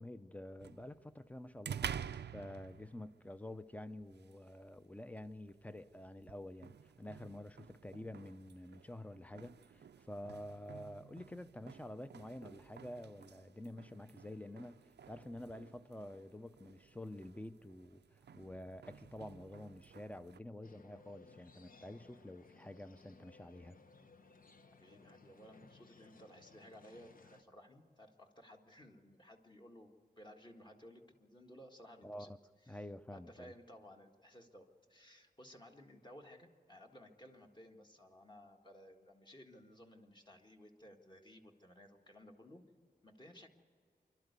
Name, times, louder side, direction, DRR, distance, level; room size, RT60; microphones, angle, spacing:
voice 1, 0.0-14.8 15.1-18.0 18.3-23.8 32.0-32.4 32.7-33.5, left 1 dB, 10° left, 0.5 m, -49 dB
sound 1, 0.6-20.4, right 8 dB, 85° right, 0.5 m, -51 dB
sound 2, 20.6-27.4, left 4 dB, 55° left, 0.9 m, -61 dB
voice 2, 24.8-32.3 32.6-42.6 43.0-43.5, equal, 25° left, 1.7 m, -58 dB
26.5 x 12.5 x 8.2 m
wide cardioid pair, 115°, 17 cm